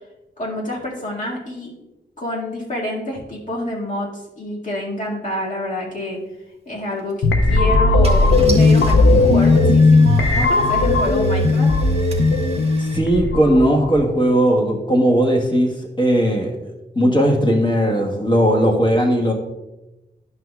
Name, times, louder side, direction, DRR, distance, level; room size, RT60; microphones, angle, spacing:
voice 1, 0.4-1.7 2.2-6.2 6.7-11.7, left 1 dB, 45° left, -3 dB, 1.9 m, -27 dB
Car / Engine starting, 6.9-7.1 7.7-7.8 8.0-13.0, right 3 dB, 35° right, 1.1 m, -36 dB
sound 1, 7.2-14.1, left 2 dB, 80° left, 0.7 m, -16 dB
voice 2, 12.8-19.3, equal, 25° left, 1 dB, 1.4 m, -18 dB
11.0 x 6.1 x 2.3 m, 0.98 s
wide cardioid pair, 110°, 18 cm